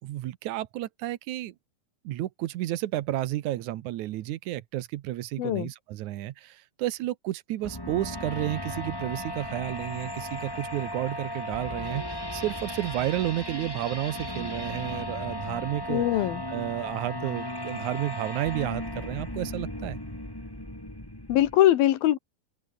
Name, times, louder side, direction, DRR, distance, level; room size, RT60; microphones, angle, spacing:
voice 1, 0.0-1.5 2.1-20.0, right 15 dB, 70° right, 2.0 m, -32 dB
voice 2, 5.4-5.7 15.9-16.4 21.3-22.2, left 13 dB, 80° left, 3.1 m, -22 dB
sound 1, 7.6-21.6, left 1 dB, 5° left, 4.1 m, -36 dB
open air
omnidirectional pair, 4.3 m